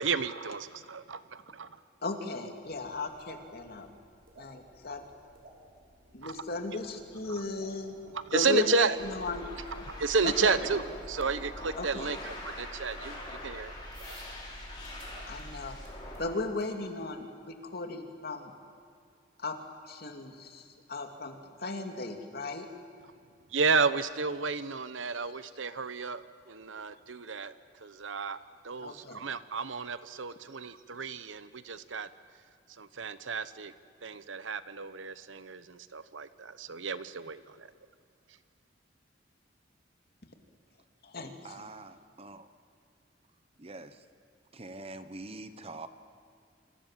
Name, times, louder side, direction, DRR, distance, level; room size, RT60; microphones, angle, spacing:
voice 1, 0.0-1.8 6.2-6.4 7.3-7.4 8.1-9.0 9.9-13.7 23.5-28.4 28.6-32.1 32.8-33.7 34.0-37.7, right 4 dB, 80° right, 13 dB, 1.0 m, -32 dB
voice 2, 2.0-3.9 4.4-5.0 6.1-7.9 8.3-9.5 10.2-10.6 11.8-12.1 15.3-15.8 16.2-18.5 19.4-19.6 19.9-22.7 28.8-29.2 41.0-41.3, left 3 dB, 55° left, 4 dB, 2.7 m, -36 dB
sound 1, 2.6-16.7, right 1 dB, 55° right, 6.6 m, -57 dB
sound 2, 9.0-16.2, left 1 dB, 25° left, 6.6 m, -43 dB
voice 3, 41.2-42.5 43.6-44.1 44.5-45.9, right 2 dB, 30° right, 11 dB, 1.1 m, -45 dB
28.0 x 26.5 x 7.6 m, 2.3 s
head